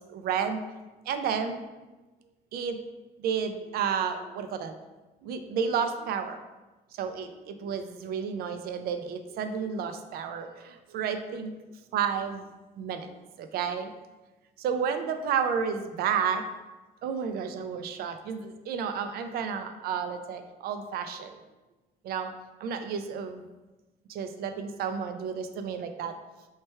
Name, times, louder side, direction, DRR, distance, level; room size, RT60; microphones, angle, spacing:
voice 1, 0.1-0.7 1.1-1.6 2.5-2.8 3.2-4.7 5.2-6.4 6.9-11.5 11.9-12.4 12.8-13.1 13.4-13.9 14.6-16.5 17.0-21.4 22.0-22.3 22.6-23.4 24.1-26.2, right 7 dB, 65° right, 8 dB, 0.4 m, -31 dB
3.2 x 3.2 x 4.4 m, 1.1 s
cardioid pair, 110°, 17 cm